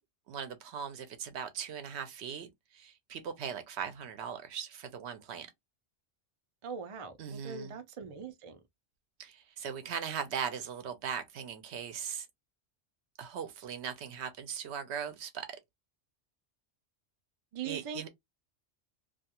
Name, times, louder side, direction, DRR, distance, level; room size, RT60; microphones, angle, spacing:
voice 1, 0.3-5.5 7.2-7.7 9.2-12.3 13.2-15.5 17.6-18.1, right 7 dB, 75° right, 0.9 m, -39 dB
voice 2, 6.6-8.6 17.5-18.1, right 6 dB, 50° right, 0.4 m, -41 dB
2.4 x 2.3 x 2.8 m
omnidirectional pair, 1.2 m